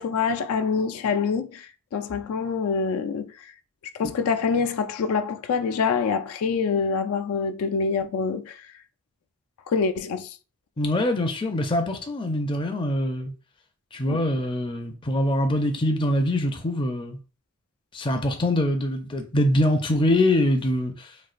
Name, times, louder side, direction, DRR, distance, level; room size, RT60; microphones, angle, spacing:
voice 1, 0.0-3.5 3.9-8.7 9.7-10.4 14.1-14.3, left 5 dB, 80° left, 0.3 m, -26 dB
voice 2, 10.8-13.3 13.9-17.2 17.9-21.1, left 1 dB, 25° left, 0.4 m, -24 dB
4.2 x 2.4 x 2.4 m
head